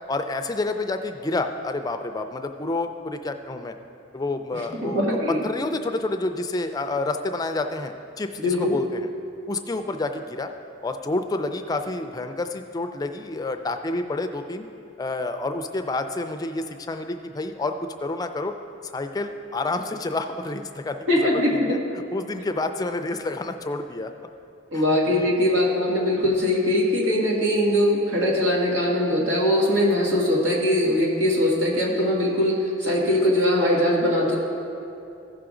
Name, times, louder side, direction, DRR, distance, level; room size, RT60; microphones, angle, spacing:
voice 1, 0.1-3.7 4.1-9.1 9.5-10.5 10.8-14.7 15.0-17.7 18.0-18.5 18.8-21.8 22.1-24.1 24.7-24.8 25.2-25.3, left 2 dB, 20° left, 7 dB, 0.3 m, -29 dB
voice 2, 4.8-5.4 8.4-8.8 21.1-21.8 24.7-34.4, left 1 dB, 90° right, -3 dB, 1.9 m, -21 dB
15.0 x 5.9 x 3.8 m, 2.7 s
head